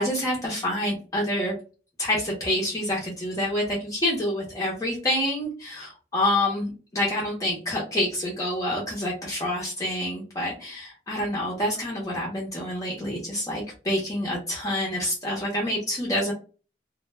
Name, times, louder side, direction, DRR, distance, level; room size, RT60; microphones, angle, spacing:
voice 1, 0.0-1.6 2.0-16.3, left 1 dB, 20° left, -3 dB, 0.6 m, -27 dB
2.1 x 2.1 x 3.1 m, 0.35 s
head